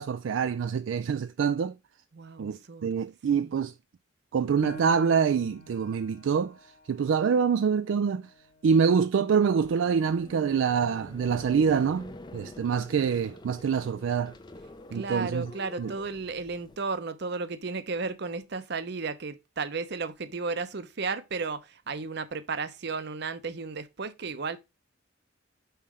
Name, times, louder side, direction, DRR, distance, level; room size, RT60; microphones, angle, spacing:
voice 1, 0.0-1.7 2.4-3.7 4.3-8.3 8.6-14.3 14.9-15.5 15.8-15.9, right 6 dB, 75° right, 0.3 m, -26 dB
voice 2, 2.1-2.9 3.3-3.6 14.9-24.6, right 4 dB, 55° right, 0.7 m, -34 dB
Piano, 4.6-9.8 10.3-10.4 11.0-11.5, left 1 dB, 40° left, 1.1 m, -48 dB
sound 1, 9.6-16.8, left 2 dB, 20° left, 0.5 m, -47 dB
5.7 x 4.2 x 4.8 m
head